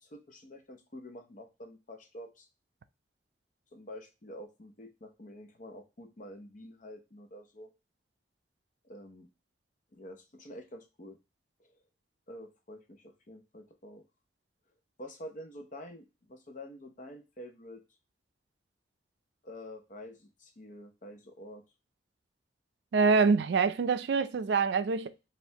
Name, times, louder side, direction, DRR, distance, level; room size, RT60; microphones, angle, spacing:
voice 1, 0.0-2.5 3.7-7.7 8.8-9.3 9.9-11.2 11.6-11.8 12.3-14.0 15.0-17.8 19.4-21.6, left 1 dB, 45° left, 0.7 m, -48 dB
voice 2, 22.9-25.1, right 5 dB, 70° right, 0.4 m, -25 dB
4.4 x 2.5 x 3.3 m
head